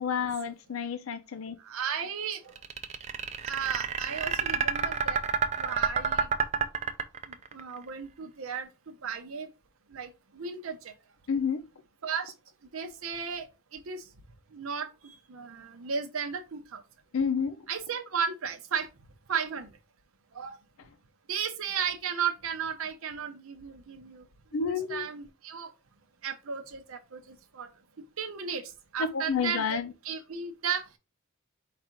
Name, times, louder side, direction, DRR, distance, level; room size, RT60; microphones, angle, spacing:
voice 1, 0.0-1.6 11.3-11.6 17.1-17.6 24.5-25.1 29.1-29.9, left 6 dB, 75° left, 0.5 m, -30 dB
voice 2, 1.6-2.5 3.5-5.2 5.6-6.3 7.5-9.5 9.9-10.1 10.4-10.9 12.0-12.3 12.7-13.4 13.7-14.0 14.5-16.8 17.7-18.9 19.3-19.7 20.3-20.6 21.3-24.2 24.5-25.7 26.2-27.2 27.5-27.7 28.2-29.8 30.0-30.8, right 7 dB, 75° right, 0.7 m, -34 dB
sound 1, 2.6-7.6, right 6 dB, 30° right, 0.4 m, -28 dB
4.7 x 2.5 x 4.3 m
head